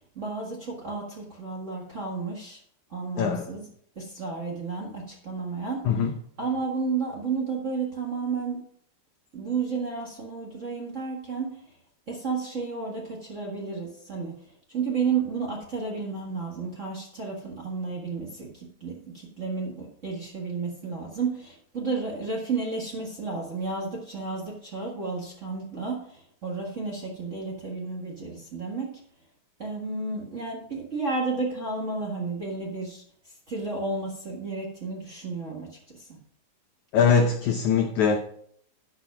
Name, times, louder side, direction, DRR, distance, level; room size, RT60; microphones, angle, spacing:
voice 1, 0.1-2.6 2.9-3.6 3.9-5.9 6.4-8.6 9.3-11.6 12.1-14.4 14.7-29.0 29.6-33.0 33.5-36.2, right 4 dB, 65° right, -2 dB, 0.7 m, -32 dB
voice 2, 36.9-38.2, left 6 dB, 80° left, 4 dB, 1.7 m, -22 dB
12.0 x 5.0 x 5.8 m, 0.64 s
omnidirectional pair, 4.3 m